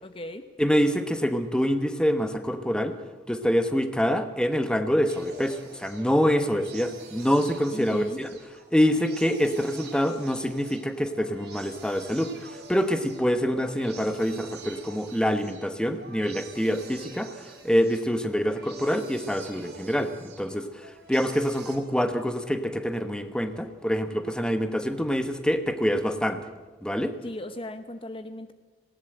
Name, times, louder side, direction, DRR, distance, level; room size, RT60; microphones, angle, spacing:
voice 1, 0.0-0.4 7.7-8.2 27.2-28.5, left 1 dB, 30° left, 9 dB, 0.7 m, -37 dB
voice 2, 0.6-3.0 3.3-8.3 8.7-12.3 12.7-17.3 17.6-20.7 21.1-26.4 26.8-27.1, equal, 5° left, 8 dB, 1.0 m, -25 dB
sound 1, 5.1-21.8, right 4 dB, 60° right, 3.6 m, -46 dB
19.0 x 18.0 x 7.9 m, 1.3 s
head